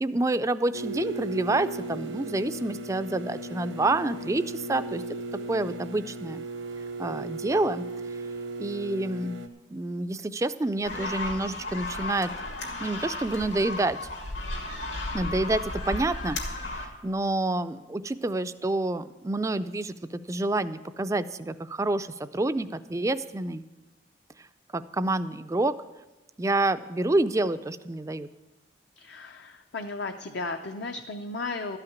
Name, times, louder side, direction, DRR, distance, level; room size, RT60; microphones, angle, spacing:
voice 1, 0.0-5.0 5.5-6.4 7.0-7.8 8.6-9.4 9.7-12.3 12.8-14.0 15.1-16.4 16.7-23.6 24.7-25.7 26.4-28.3, right 2 dB, 15° right, 12 dB, 0.3 m, -28 dB
sound 1, 0.7-9.5, right 2 dB, 80° right, 0.9 m, -36 dB
sound 2, 10.8-16.9, left 2 dB, 80° left, 2.3 m, -34 dB
voice 2, 29.0-31.8, left 3 dB, 65° left, 5 dB, 0.6 m, -35 dB
13.0 x 5.8 x 9.2 m, 1.1 s
head